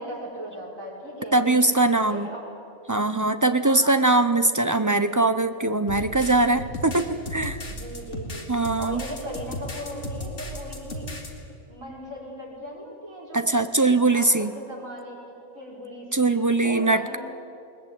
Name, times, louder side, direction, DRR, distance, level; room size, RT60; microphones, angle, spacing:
voice 1, 0.0-2.6 3.6-4.0 7.7-8.4 8.8-11.1 11.7-13.5 14.1-17.2, equal, 90° right, -4 dB, 6.2 m, -38 dB
voice 2, 1.3-2.3 2.9-7.6 8.5-9.0 13.3-14.5 16.1-17.2, right 2 dB, 25° right, 10 dB, 0.4 m, -21 dB
sound 1, 5.9-11.3, left 1 dB, 60° left, 2.7 m, -35 dB
21.0 x 19.5 x 9.0 m, 2.6 s
omnidirectional pair, 1.4 m